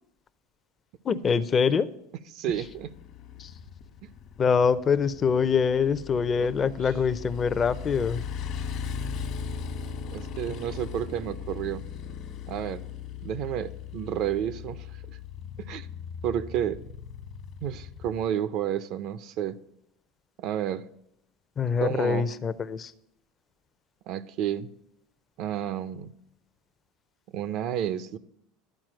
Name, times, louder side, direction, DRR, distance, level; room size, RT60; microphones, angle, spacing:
voice 1, 1.0-1.9 3.4-3.5 4.4-8.2 21.6-22.9, left 6 dB, 35° left, 13 dB, 0.6 m, -24 dB
voice 2, 2.3-2.9 6.4-6.9 10.1-11.8 12.5-12.8 13.2-15.2 15.6-15.9 16.2-16.8 17.6-19.6 20.4-20.9 21.8-22.3 24.1-24.7 25.4-26.1 27.3-28.2, right 10 dB, 60° right, 13 dB, 0.5 m, -31 dB
Motorcycle, 2.5-18.2, left 6 dB, 60° left, 1.3 m, -38 dB
11.5 x 4.4 x 7.6 m, 0.78 s
supercardioid pair, 100°, 0 cm